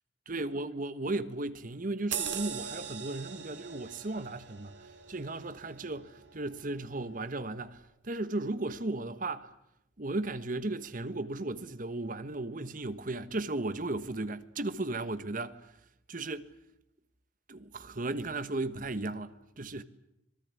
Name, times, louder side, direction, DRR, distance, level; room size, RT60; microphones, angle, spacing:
voice 1, 0.3-9.5 10.0-15.7 16.1-16.5 17.5-19.8, right 2 dB, 45° right, 1.3 m, -35 dB
sound 1, 2.1-7.1 7.5-7.7, right 8 dB, 65° right, 2.5 m, -41 dB
25.5 x 19.0 x 9.6 m
head